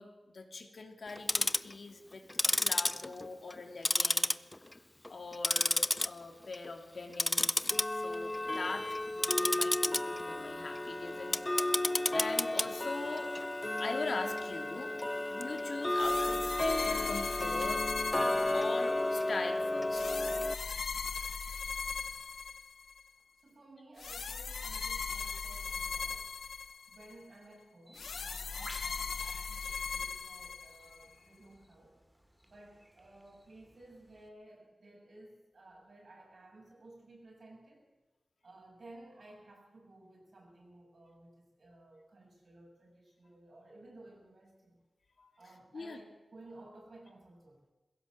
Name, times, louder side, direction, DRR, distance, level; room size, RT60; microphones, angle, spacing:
voice 1, 0.0-4.3 5.1-11.7 12.1-13.3 13.8-14.9 15.3-17.9 18.5-20.0 45.2-45.3 45.7-46.0, left 3 dB, 65° left, 4 dB, 2.9 m, -42 dB
Tick-tock, 1.1-1.7 2.3-3.6 3.9-4.7 5.1-6.1 6.4-6.7 7.1-20.5, left 1 dB, 20° left, 0.6 m, -32 dB
sound 1, 15.9-19.1 19.9-23.0 24.0-27.1 28.0-31.1, left 5 dB, 90° left, 0.8 m, -39 dB
voice 2, 23.2-26.3 26.9-32.0 32.5-37.9 38.4-44.8 45.4-47.7, right 2 dB, 60° right, -1 dB, 7.5 m, -56 dB
Bird, 27.9-34.3, equal, 10° right, 2.4 m, -57 dB
21.0 x 16.5 x 7.6 m, 1.1 s
wide cardioid pair, 85°, 0 cm